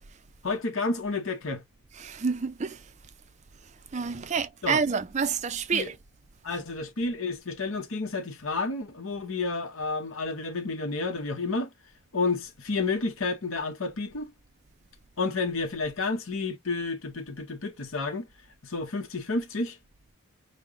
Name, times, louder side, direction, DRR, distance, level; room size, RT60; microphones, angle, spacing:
voice 1, 0.4-1.6 4.6-4.8 5.7-5.9 6.4-11.7 12.1-14.3 15.2-18.3 18.6-19.8, left 3 dB, 70° left, 0.8 m, -30 dB
voice 2, 2.0-2.9 3.9-5.9, right 5 dB, 30° right, 0.4 m, -28 dB
5.2 x 2.1 x 3.6 m
head